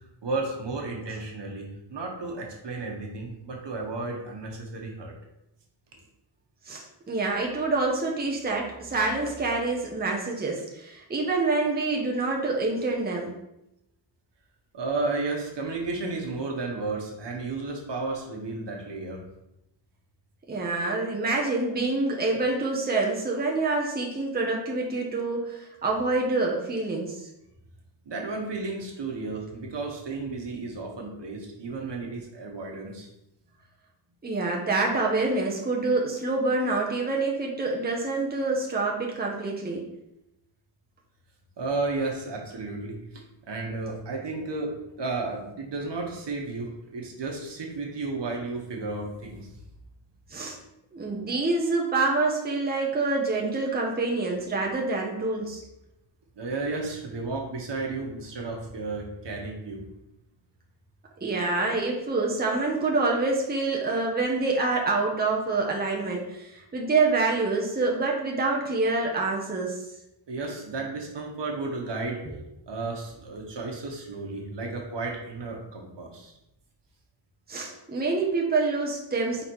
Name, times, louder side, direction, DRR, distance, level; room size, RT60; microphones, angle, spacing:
voice 1, 0.2-5.1 14.7-19.2 28.0-33.1 41.6-49.6 56.3-59.9 70.3-72.2 72.7-76.3, right 3 dB, 70° right, 0 dB, 1.4 m, -33 dB
voice 2, 6.7-13.4 20.5-27.3 34.2-39.9 50.3-50.6 50.9-55.6 61.2-69.8 72.3-72.4 77.5-79.4, right 3 dB, 20° right, -2 dB, 0.8 m, -26 dB
5.4 x 4.0 x 4.6 m, 0.86 s
wide cardioid pair, 175°, 45 cm